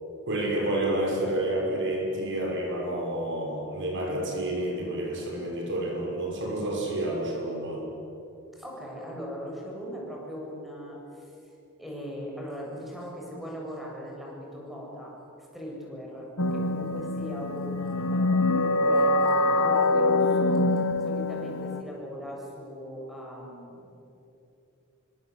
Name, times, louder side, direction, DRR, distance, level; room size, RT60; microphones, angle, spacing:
voice 1, 0.3-7.8, right 1 dB, 60° right, -1 dB, 6.0 m, -29 dB
voice 2, 8.5-11.3 11.8-15.1 15.4-24.0, equal, ahead, -3 dB, 7.6 m, -39 dB
sound 1, 16.4-21.8, left 2 dB, 70° left, 1.5 m, -24 dB
27.0 x 24.5 x 8.5 m, 2.9 s
head